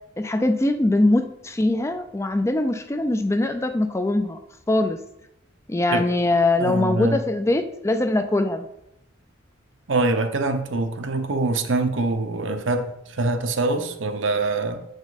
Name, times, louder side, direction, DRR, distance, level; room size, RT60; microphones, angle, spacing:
voice 1, 0.2-4.4 4.7-5.0 5.7-8.7, left 2 dB, 15° left, 8 dB, 0.4 m, -22 dB
voice 2, 6.6-7.2 9.9-14.8, right 2 dB, 75° right, 7 dB, 0.8 m, -24 dB
7.1 x 5.2 x 4.0 m, 0.82 s
head